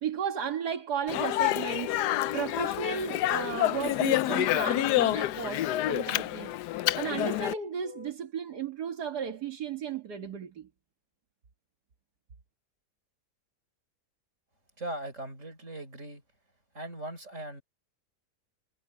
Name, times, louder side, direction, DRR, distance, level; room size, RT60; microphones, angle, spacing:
voice 1, 0.0-2.0 2.3-6.5 7.0-10.7, right 8 dB, 75° right, 2.2 m, -34 dB
Speech, 1.1-7.5, left 14 dB, 85° left, 1.2 m, -28 dB
sound 1, 1.7-5.0 5.3-8.1, left 6 dB, 30° right, 1.6 m, -46 dB
voice 2, 14.8-16.2 16.7-17.6, right 1 dB, 45° right, 5.8 m, -39 dB
omnidirectional pair, 1.7 m